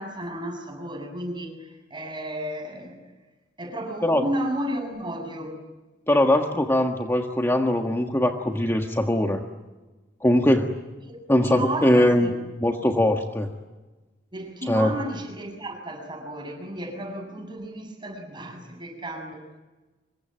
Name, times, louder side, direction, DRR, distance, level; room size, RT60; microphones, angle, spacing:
voice 1, 0.0-3.0 3.6-5.6 11.0-11.2 11.4-12.3 14.3-19.4, right 1 dB, 25° right, 4 dB, 7.5 m, -33 dB
voice 2, 6.1-9.4 10.2-10.7 11.3-12.3 12.6-13.5 14.7-14.9, left 1 dB, 15° left, 3 dB, 1.6 m, -21 dB
26.0 x 23.5 x 9.0 m, 1.2 s
head